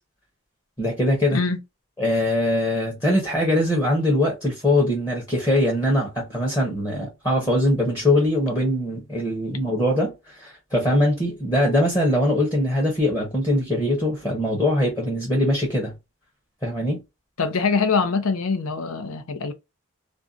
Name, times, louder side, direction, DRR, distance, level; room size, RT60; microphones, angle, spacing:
voice 1, 0.8-1.4 2.0-15.9 16.6-17.0, left 1 dB, 15° left, 0.8 m, -22 dB
voice 2, 1.3-1.6 17.4-19.5, left 4 dB, 85° left, 0.6 m, -23 dB
2.5 x 2.2 x 2.4 m
head